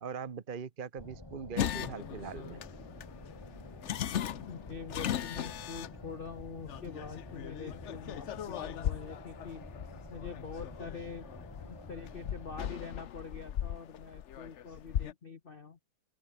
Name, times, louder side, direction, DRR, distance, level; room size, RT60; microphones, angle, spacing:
voice 1, 0.0-2.6, right 6 dB, 40° right, 0.7 m, -41 dB
sound 1, 1.0-12.7, left 1 dB, 10° left, 2.4 m, -49 dB
sound 2, 1.6-15.1, left 10 dB, 80° left, 0.6 m, -39 dB
voice 2, 4.4-9.6 10.1-11.3 11.6-15.8, left 5 dB, 40° left, 0.8 m, -45 dB
open air
omnidirectional pair, 2.2 m